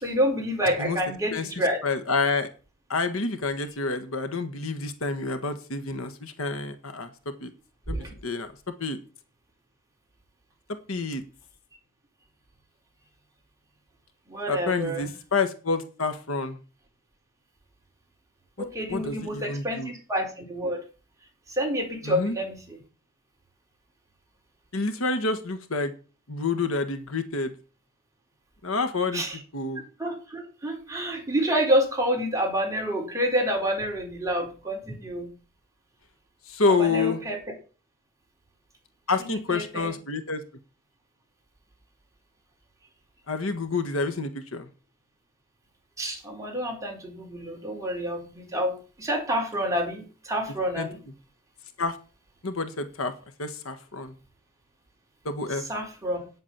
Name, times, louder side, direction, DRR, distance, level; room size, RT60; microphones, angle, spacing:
voice 1, 0.0-1.8 7.9-8.1 14.3-15.1 18.6-20.8 21.5-22.8 29.1-29.4 30.0-35.3 36.8-37.4 39.2-39.9 46.0-51.0 55.7-56.2, equal, 15° right, 0 dB, 4.5 m, -28 dB
voice 2, 1.8-2.5 2.9-7.1 7.4-7.5 7.9-8.5 8.8-9.0 10.9-11.2 14.5-16.6 18.9-19.9 22.0-22.3 24.7-25.9 26.3-27.5 28.6-29.2 29.5-29.8 36.5-37.2 39.1-40.4 43.3-44.7 50.7-50.9 51.8-51.9 52.4-53.1 53.4-54.1 55.2-55.6, left 3 dB, 70° left, 9 dB, 1.6 m, -28 dB
9.6 x 8.3 x 7.5 m, 0.36 s
head